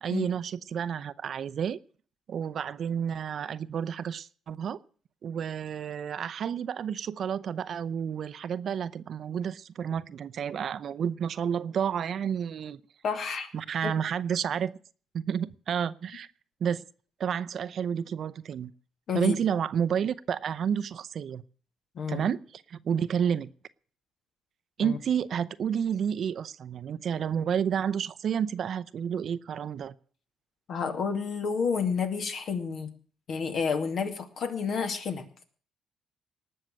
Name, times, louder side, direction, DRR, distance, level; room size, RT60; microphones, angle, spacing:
voice 1, 0.0-1.8 2.3-4.8 5.2-12.8 13.5-14.7 15.1-16.3 16.6-16.8 17.2-18.7 19.1-21.4 22.1-23.5 24.8-29.9, right 8 dB, 55° right, 14 dB, 0.7 m, -30 dB
voice 2, 13.0-13.5 13.8-13.9 19.1-19.4 21.9-22.3 24.8-25.0 30.7-32.9 33.3-35.2, left 5 dB, 55° left, 7 dB, 2.5 m, -30 dB
19.0 x 6.6 x 9.2 m, 0.44 s
cardioid pair, 120°, 0 cm